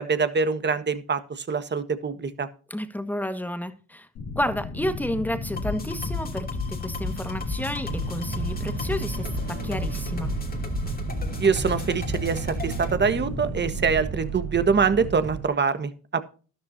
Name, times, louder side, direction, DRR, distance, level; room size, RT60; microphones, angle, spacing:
voice 1, 0.0-2.5 11.4-16.2, right 5 dB, 35° right, 11 dB, 1.5 m, -24 dB
voice 2, 2.7-4.1 4.3-10.3, left 1 dB, 5° left, 9 dB, 1.7 m, -31 dB
sound 1, 4.2-14.2, left 3 dB, 75° left, 3.2 m, -35 dB
sound 2, 5.6-12.9, left 3 dB, 30° left, 2.8 m, -34 dB
sound 3, 7.9-15.5, right 9 dB, 50° right, 0.9 m, -34 dB
12.5 x 12.0 x 2.8 m, 0.37 s
cardioid pair, 90°, 30 cm